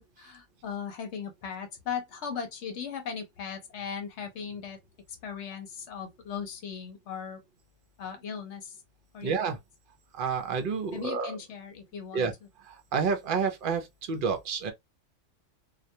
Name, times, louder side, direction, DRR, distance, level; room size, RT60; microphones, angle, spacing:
voice 1, 0.0-4.8 5.2-7.4 8.0-8.8 9.1-9.6 10.9-12.3, left 7 dB, 70° left, 0.8 m, -38 dB
voice 2, 9.2-9.6 10.1-11.3 12.1-12.3 12.6-14.7, right 5 dB, 55° right, 0.7 m, -29 dB
2.3 x 2.2 x 2.6 m
omnidirectional pair, 1.3 m